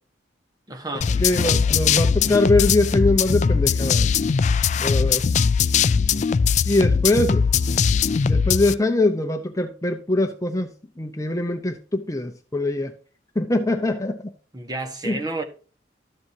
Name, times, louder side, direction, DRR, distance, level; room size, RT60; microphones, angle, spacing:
voice 1, 0.7-1.1 14.5-15.4, right 2 dB, 20° right, 1.3 m, -30 dB
sound 1, 1.0-8.7, left 6 dB, 40° left, 0.3 m, -20 dB
voice 2, 1.2-4.1 4.8-5.2 6.6-7.4 8.2-10.7 11.0-12.9 13.4-14.2 15.0-15.2, left 2 dB, 15° left, 0.7 m, -22 dB
13.0 x 7.8 x 2.8 m
head